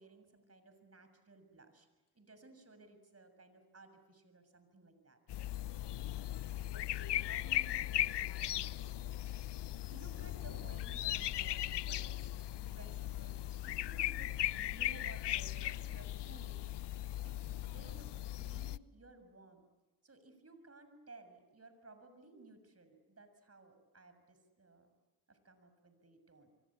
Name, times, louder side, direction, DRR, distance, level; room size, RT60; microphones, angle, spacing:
voice 1, 0.0-1.9 2.2-5.2 9.9-12.3 12.6-16.6 17.2-19.7 20.0-24.9 25.3-26.5, right 3 dB, 30° right, 9 dB, 6.9 m, -58 dB
sound 1, 5.3-18.8, left 13 dB, 60° left, 0.8 m, -38 dB
voice 2, 6.7-9.2 9.6-9.8, left 4 dB, 40° left, 1 dB, 3.6 m, -57 dB
26.5 x 24.0 x 8.8 m, 1.2 s
supercardioid pair, 55°, 48 cm